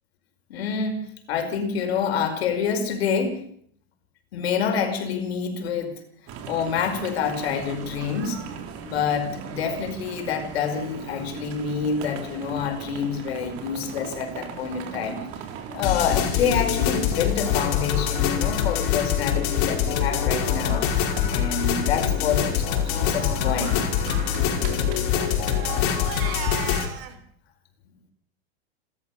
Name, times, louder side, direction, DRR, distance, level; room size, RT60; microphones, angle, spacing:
voice 1, 0.5-1.0 1.3-3.4 4.3-6.0 6.5-8.4 8.8-15.2 15.7-20.8 21.3-23.9, left 6 dB, 75° left, 6 dB, 5.3 m, -27 dB
sound 1, 6.3-25.9, right 7 dB, 45° right, 3.9 m, -38 dB
sound 2, 15.8-26.9, left 9 dB, 55° left, 5.2 m, -24 dB
Crying sobbing, 21.2-21.3 21.6-21.7 22.0-22.3 22.7-23.0 24.1-27.2, right 10 dB, 60° right, 3.0 m, -38 dB
28.5 x 13.5 x 7.1 m, 0.65 s
supercardioid pair, 130°, 31 cm